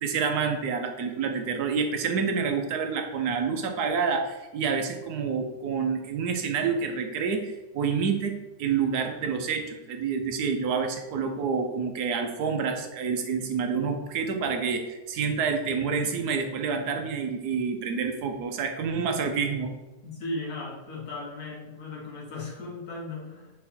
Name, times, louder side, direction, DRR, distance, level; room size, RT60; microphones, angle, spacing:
voice 1, 0.0-19.7, right 5 dB, 75° right, 5 dB, 1.3 m, -28 dB
voice 2, 20.0-23.5, left 2 dB, 65° left, -3 dB, 2.0 m, -36 dB
5.2 x 4.3 x 4.3 m, 1.1 s
omnidirectional pair, 1.7 m